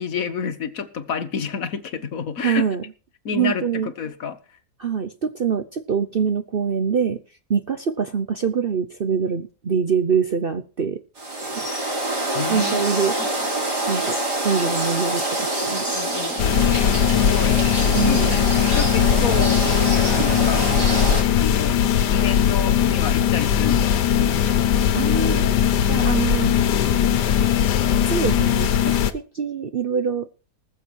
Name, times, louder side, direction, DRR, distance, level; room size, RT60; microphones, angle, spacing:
voice 1, 0.0-2.6 3.2-4.4 12.3-12.8 13.2-13.3 15.7-17.8 18.0-20.7 21.3-21.8 22.1-24.1, left 6 dB, 60° left, 1.5 m, -30 dB
voice 2, 2.4-2.8 3.3-3.9 4.8-7.2 7.5-11.0 11.4-11.7 12.5-13.1 13.9-15.8 17.9-18.5 24.9-25.5 25.9-26.5 28.1-30.3, right 6 dB, 50° right, 0.7 m, -24 dB
sound 1, 11.2-21.2, right 1 dB, 75° right, 4.5 m, -26 dB
sound 2, 16.4-29.1, left 9 dB, 85° left, 1.5 m, -19 dB
20.0 x 7.0 x 4.7 m
omnidirectional pair, 1.8 m